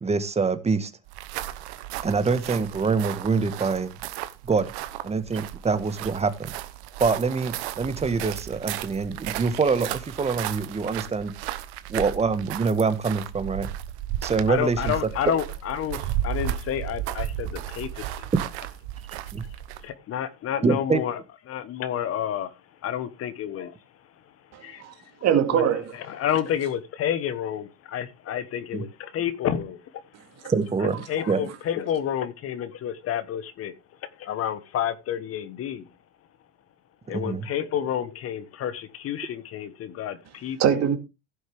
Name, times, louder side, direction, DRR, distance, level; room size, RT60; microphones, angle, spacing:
voice 1, 0.0-0.9 2.0-3.9 4.5-4.7 5.0-6.5 7.0-11.3 11.9-13.7 14.2-14.9 19.3-19.4 20.6-21.0 28.7-28.8 30.5-31.5 37.1-37.5, right 4 dB, 20° right, 1.5 m, -25 dB
sound 1, 1.1-19.9, right 12 dB, 70° right, 1.1 m, -34 dB
voice 2, 14.5-18.0 19.8-21.2 21.5-22.5 22.8-23.7 24.6-24.8 25.5-25.7 26.1-29.8 31.1-33.7 34.2-35.9 37.1-40.8, left 9 dB, 45° left, 1.3 m, -29 dB
voice 3, 24.5-24.9 25.2-25.9 40.6-41.0, right 9 dB, 50° right, 2.2 m, -22 dB
16.0 x 6.3 x 3.5 m
hypercardioid pair, 90°, 34 cm